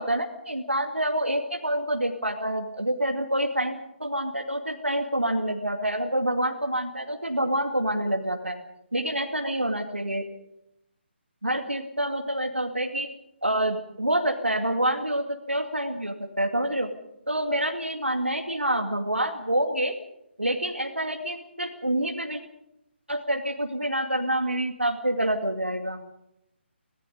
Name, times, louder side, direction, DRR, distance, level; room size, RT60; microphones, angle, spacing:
voice 1, 0.0-8.5 8.9-10.3 11.4-13.1 13.4-16.9 17.3-20.0 20.4-22.4 23.1-26.0, right 1 dB, 85° right, 3 dB, 2.4 m, -27 dB
26.5 x 18.5 x 5.3 m, 0.82 s
figure-of-eight pair, 145°, 6 cm